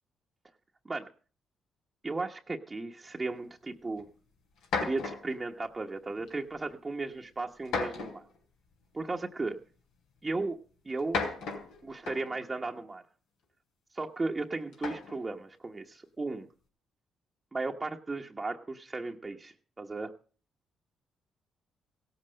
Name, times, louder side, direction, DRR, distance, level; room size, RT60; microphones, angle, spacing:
voice 1, 2.0-4.1 4.8-8.3 8.9-9.6 10.2-11.2 11.8-13.0 13.9-16.5 17.5-20.1, right 3 dB, 25° right, 1 dB, 1.1 m, -35 dB
sound 1, 4.0-4.1 4.6-5.4 6.3-6.6 7.7-8.4 9.5-9.6 10.9-12.4 14.7-15.2, left 4 dB, 85° left, 3.6 m, -35 dB
16.5 x 7.8 x 6.4 m, 0.39 s
cardioid pair, 90°, 0 cm